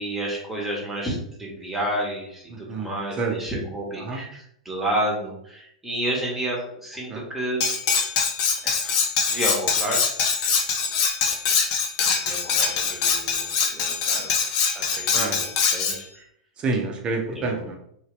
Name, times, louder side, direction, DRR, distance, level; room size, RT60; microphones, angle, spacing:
voice 1, 0.0-7.7 8.6-9.0 9.3-10.1 12.3-14.3 14.7-16.2 17.3-17.4, right 1 dB, 10° right, -3 dB, 1.3 m, -30 dB
voice 2, 2.5-3.3 4.0-4.2 7.1-7.2 15.2-15.4 16.6-17.8, right 3 dB, 30° right, 2 dB, 0.8 m, -28 dB
Cutlery silverware, 7.6-16.0, left 6 dB, 50° left, 0.7 m, -23 dB
3.1 x 2.7 x 3.3 m, 0.70 s
figure-of-eight pair, 100°, 3 cm